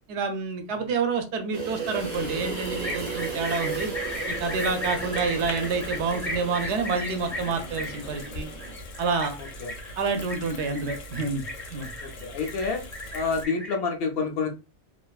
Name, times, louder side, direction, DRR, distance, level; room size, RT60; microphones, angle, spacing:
voice 1, 0.1-3.9 4.3-8.5 9.0-9.4 10.0-11.4 11.7-11.9, right 4 dB, 70° right, 6 dB, 0.8 m, -28 dB
sound 1, 1.5-8.7, right 4 dB, 40° right, 0.6 m, -35 dB
sound 2, 2.0-13.5, left 1 dB, 80° left, 1.0 m, -42 dB
sound 3, 2.8-13.7, left 1 dB, 5° left, 0.3 m, -36 dB
voice 2, 12.0-12.8 13.1-14.5, left 4 dB, 65° left, 3 dB, 0.7 m, -28 dB
2.6 x 2.2 x 2.2 m, 0.29 s
omnidirectional pair, 1.2 m